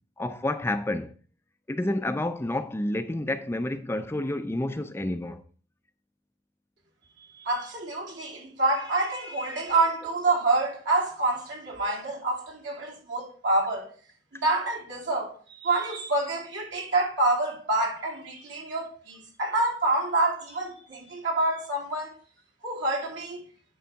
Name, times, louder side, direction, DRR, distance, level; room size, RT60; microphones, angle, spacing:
voice 1, 0.2-1.1 1.7-5.4, left 1 dB, 15° left, 0.4 m, -29 dB
voice 2, 7.3-13.9 14.3-22.2 22.6-23.4, right 2 dB, 70° right, 2.8 m, -27 dB
9.3 x 3.4 x 6.3 m
head